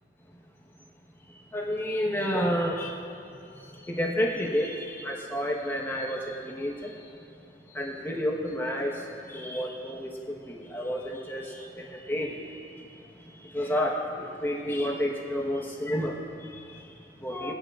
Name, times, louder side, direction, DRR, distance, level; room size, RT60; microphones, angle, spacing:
voice 1, 1.3-2.9 3.3-7.1 7.7-12.9 13.2-17.5, equal, 10° left, -2 dB, 1.2 m, -31 dB
18.0 x 9.7 x 2.5 m, 2.7 s
head